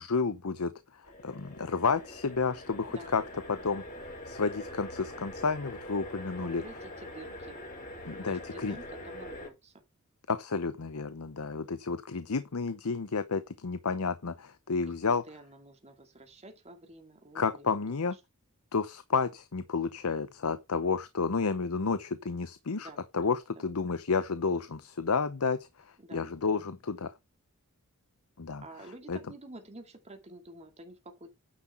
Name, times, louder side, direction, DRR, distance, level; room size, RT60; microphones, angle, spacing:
voice 1, 0.0-3.2 3.5-3.8 4.3-6.6 8.1-8.8 10.3-15.2 17.3-18.2 18.7-27.1 28.4-28.6 29.1-29.2, left 4 dB, 75° left, 0.8 m, -31 dB
sound 1, 1.0-9.5, left 1 dB, 40° left, 5.2 m, -44 dB
voice 2, 2.9-4.1 6.4-7.6 8.2-9.8 14.9-17.8 22.7-23.6 26.0-26.7 28.6-31.3, right 2 dB, 30° right, 2.4 m, -50 dB
9.7 x 6.0 x 4.3 m
head